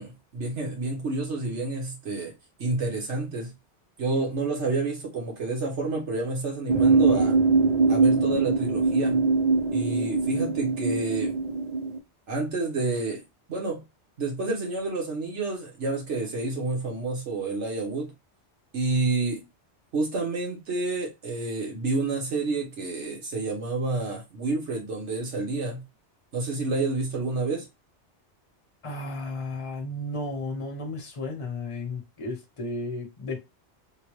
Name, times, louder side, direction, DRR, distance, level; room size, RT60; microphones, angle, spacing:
voice 1, 0.0-2.3 2.6-3.5 4.0-7.4 7.9-9.3 9.7-11.4 12.3-13.2 13.5-13.8 14.2-18.1 18.7-19.4 19.9-25.8 26.3-27.7, right 3 dB, 75° right, 1.5 m, -29 dB
sound 1, 6.7-12.0, right 4 dB, 55° right, 0.5 m, -22 dB
voice 2, 28.8-33.4, left 2 dB, 30° left, 0.9 m, -33 dB
3.7 x 2.2 x 3.1 m
omnidirectional pair, 1.2 m